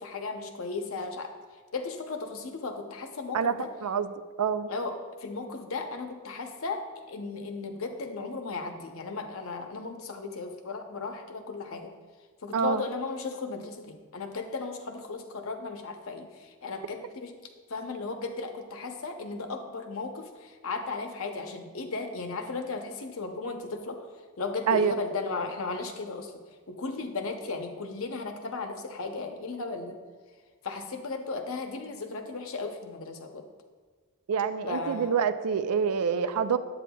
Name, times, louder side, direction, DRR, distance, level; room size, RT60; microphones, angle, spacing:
voice 1, 0.0-1.3 1.7-3.7 4.7-11.9 12.4-17.3 17.7-24.1 24.4-26.3 26.7-30.0 30.6-33.4 34.7-35.2, left 3 dB, 65° left, 5 dB, 0.7 m, -35 dB
voice 2, 3.8-4.1 4.4-4.7 12.5-12.8 24.7-24.9 34.3-36.6, right 6 dB, 90° right, 12 dB, 0.4 m, -26 dB
9.7 x 8.3 x 2.3 m, 1.5 s
head